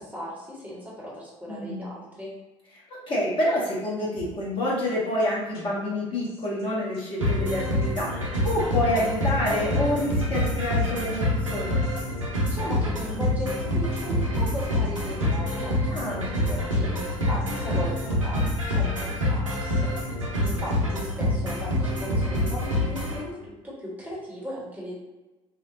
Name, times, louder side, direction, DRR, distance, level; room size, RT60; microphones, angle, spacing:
voice 1, 0.0-2.3 12.3-19.9 20.4-25.0, equal, 10° right, -6 dB, 1.0 m, -37 dB
voice 2, 1.5-1.9 2.9-11.8 15.9-16.3, left 1 dB, 35° left, -6 dB, 0.8 m, -28 dB
sound 1, 4.1-4.3 4.8-4.9 5.2-5.3 5.5-5.6 6.2-6.6 6.9-7.0 7.3-7.9 8.3-8.4 9.0-9.8 10.4-10.5 10.8-10.9 11.1-11.2 11.8-12.6 12.9-13.4 13.9-14.0 14.6-15.4 16.0-16.1 16.4-16.5 16.7-16.8 17.4-17.8 18.1-18.2 18.4-19.0 19.5-19.6 20.2-21.0, left 3 dB, 70° left, 0.9 m, -43 dB
sound 2, 7.2-23.2, left 1 dB, 85° right, 0.5 m, -26 dB
2.8 x 2.1 x 2.5 m, 1.1 s
figure-of-eight pair, 60°, 16 cm